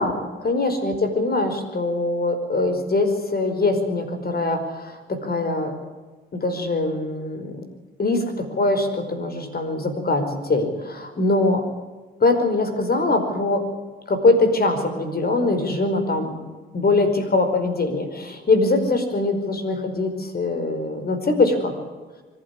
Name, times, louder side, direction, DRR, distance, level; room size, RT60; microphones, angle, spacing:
voice 1, 0.0-5.7 6.3-7.6 8.0-11.7 12.2-13.7 14.1-16.4 16.7-21.8, left 2 dB, 45° left, 7 dB, 5.2 m, -22 dB
25.0 x 12.0 x 9.9 m, 1.3 s
supercardioid pair, 60°, 21 cm